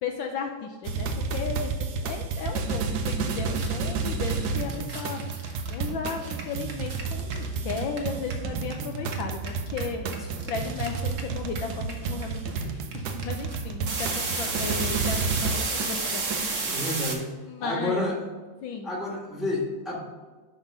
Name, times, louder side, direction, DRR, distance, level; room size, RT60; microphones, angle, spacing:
voice 1, 0.0-1.7 2.0-16.8 17.5-18.0 18.6-18.9, left 5 dB, 70° left, 4 dB, 1.3 m, -35 dB
sound 1, 0.8-16.8, right 4 dB, 65° right, 1.0 m, -31 dB
sound 2, 2.9-3.0 3.2-8.7 9.0-17.1, right 3 dB, 40° right, 1.3 m, -33 dB
voice 2, 16.6-17.3 17.6-18.2 18.8-20.0, left 2 dB, ahead, -2 dB, 1.3 m, -30 dB
11.0 x 3.8 x 5.4 m, 1.4 s
omnidirectional pair, 2.4 m